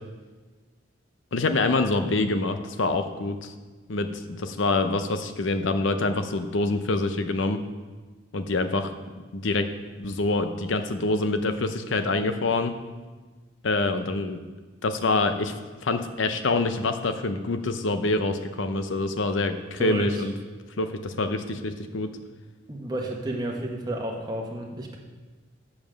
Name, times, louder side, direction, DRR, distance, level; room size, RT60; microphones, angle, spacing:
voice 1, 1.3-3.5 3.9-7.6 8.3-8.9 9.3-9.7 10.0-12.7 13.6-14.4 14.8-15.5 15.8-20.3 20.8-22.1, left 2 dB, 75° left, 8 dB, 0.7 m, -26 dB
voice 2, 19.8-20.2 22.7-25.0, right 1 dB, 20° right, 0 dB, 1.2 m, -31 dB
7.3 x 7.1 x 6.3 m, 1.3 s
head